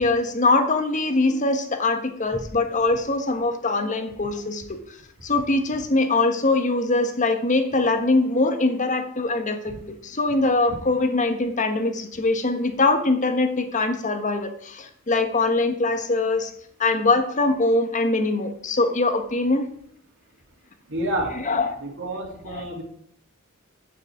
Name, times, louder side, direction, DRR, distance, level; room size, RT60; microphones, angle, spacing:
voice 1, 0.0-4.8 5.2-16.5 16.8-19.7 21.3-21.7 22.5-22.6, left 2 dB, 40° left, 7 dB, 1.3 m, -22 dB
voice 2, 20.9-21.3 21.8-22.8, right 1 dB, 65° right, 0 dB, 2.8 m, -29 dB
11.0 x 8.8 x 4.7 m, 0.65 s
head